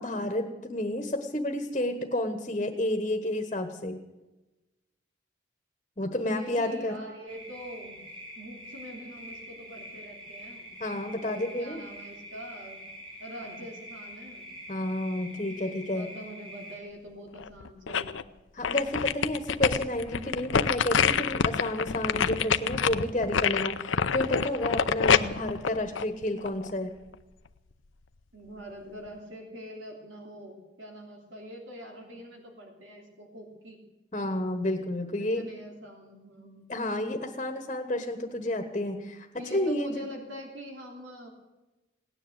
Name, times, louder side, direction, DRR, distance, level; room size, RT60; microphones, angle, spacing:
voice 1, 0.0-4.0 6.0-7.0 10.8-11.8 14.7-16.1 18.5-26.9 34.1-35.5 36.7-40.1, left 1 dB, 30° left, 5 dB, 1.3 m, -30 dB
voice 2, 6.2-8.0 8.4-10.7 11.2-12.8 13.2-14.5 15.6-18.4 28.3-33.8 35.2-36.7 39.4-41.3, equal, 90° right, 1 dB, 3.1 m, -44 dB
sound 1, 7.3-16.8, equal, 25° right, 3.7 m, -45 dB
sound 2, 17.4-18.2 18.6-26.7 27.1-27.2, left 7 dB, 90° left, 0.6 m, -26 dB
17.5 x 10.0 x 8.0 m, 1.1 s
head